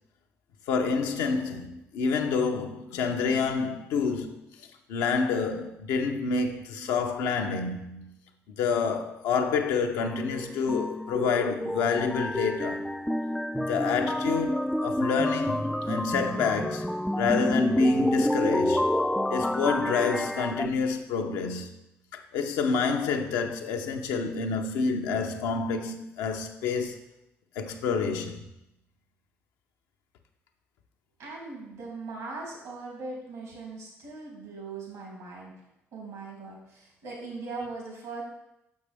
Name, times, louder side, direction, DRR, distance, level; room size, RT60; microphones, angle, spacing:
voice 1, 0.7-8.2 8.5-12.9 13.6-16.9 17.2-18.9 19.3-21.7 22.1-27.0 27.6-28.5, left 5 dB, 80° left, 0.6 m, -28 dB
sound 1, 10.0-20.7, left 1 dB, 5° left, 0.3 m, -28 dB
voice 2, 31.2-35.5 35.9-38.2, right 3 dB, 80° right, 2.7 m, -40 dB
6.4 x 6.3 x 3.4 m
hypercardioid pair, 50°, 6 cm